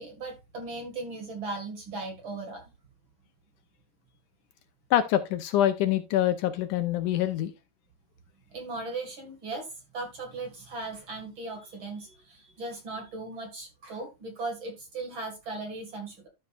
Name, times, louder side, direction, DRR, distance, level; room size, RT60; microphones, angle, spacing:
voice 1, 0.0-2.6 8.5-16.3, right 3 dB, 40° right, 2.4 m, -38 dB
voice 2, 4.9-7.5, left 12 dB, 80° left, 2.0 m, -25 dB
12.5 x 6.7 x 2.5 m
omnidirectional pair, 3.9 m